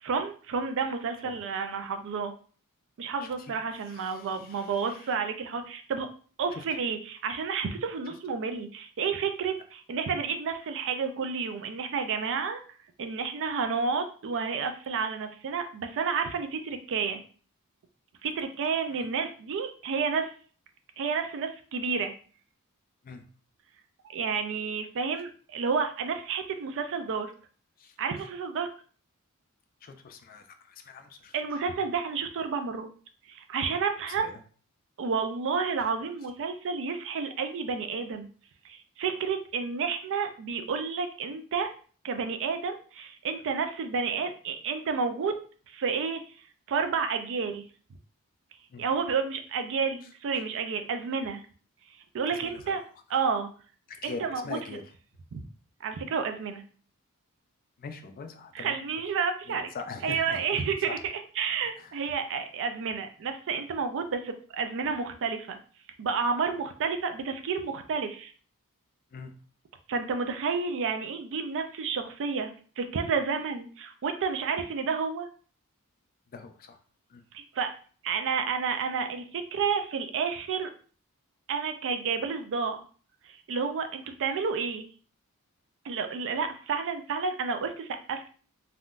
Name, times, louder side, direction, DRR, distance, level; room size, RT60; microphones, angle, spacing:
voice 1, 0.0-2.3 3.0-6.1 6.4-12.6 13.0-17.2 18.2-20.3 21.0-22.1 24.1-27.3 28.0-28.7 31.3-32.9 33.3-34.3 35.0-38.3 38.6-41.7 42.0-45.3 45.7-46.2 46.7-47.6 48.8-51.4 52.1-52.8 53.1-53.5 54.0-54.6 55.3-55.4 55.8-56.6 58.5-59.7 60.0-65.6 66.0-68.3 69.9-75.3 77.3-77.7 78.0-80.7 81.5-82.8 83.2-84.9 85.8-88.3, right 5 dB, 60° right, 7 dB, 0.4 m, -30 dB
voice 2, 3.2-5.2 6.5-6.6 18.9-19.1 23.0-23.3 27.8-28.0 29.8-31.6 34.1-34.4 48.7-48.9 52.3-52.8 53.9-54.8 57.8-58.8 59.5-61.0 61.8-62.1 69.1-69.4 76.3-76.8 77.1-77.2, left 4 dB, 40° left, 7 dB, 0.4 m, -43 dB
3.5 x 2.2 x 2.4 m, 0.42 s
head